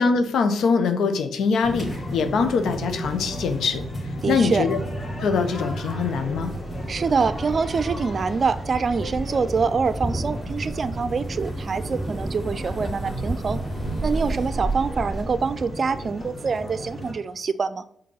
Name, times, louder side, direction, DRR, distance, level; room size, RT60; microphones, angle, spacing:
voice 1, 0.0-3.8 4.3-4.8 5.2-6.5, left 5 dB, 75° left, 8 dB, 0.8 m, -23 dB
sound 1, 1.6-17.1, equal, 40° left, 2.4 m, -34 dB
voice 2, 4.2-4.7 6.9-13.6 14.0-17.8, right 5 dB, 55° right, 13 dB, 0.5 m, -25 dB
Thunder, 6.7-15.7, right 2 dB, 15° right, 0.7 m, -32 dB
5.2 x 4.1 x 5.6 m, 0.69 s
supercardioid pair, 45°, 0 cm